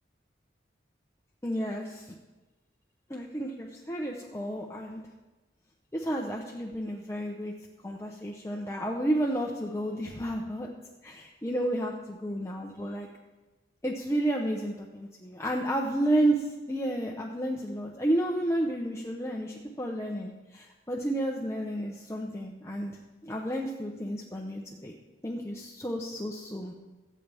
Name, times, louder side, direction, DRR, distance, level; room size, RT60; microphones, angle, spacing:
voice 1, 1.4-2.1 3.1-5.0 5.9-7.5 7.8-10.7 11.0-13.1 13.8-24.9 25.2-26.7, right 1 dB, 15° left, 0 dB, 0.8 m, -31 dB
23.0 x 8.6 x 3.5 m, 1.2 s
head